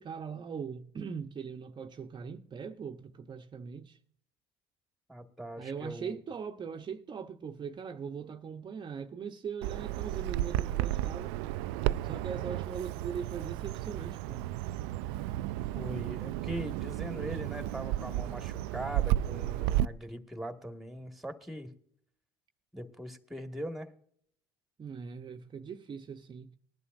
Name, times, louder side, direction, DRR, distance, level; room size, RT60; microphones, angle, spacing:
voice 1, 0.0-4.0 5.6-11.4 12.0-14.4 24.8-26.5, right 6 dB, 35° right, 0.9 m, -40 dB
voice 2, 5.1-6.2 15.7-21.7 22.7-23.9, equal, ahead, 1.9 m, -41 dB
Bird vocalization bird call bird song, 9.6-19.9, right 14 dB, 80° right, 0.4 m, -33 dB
19.5 x 11.0 x 2.6 m
hypercardioid pair, 70°, 13 cm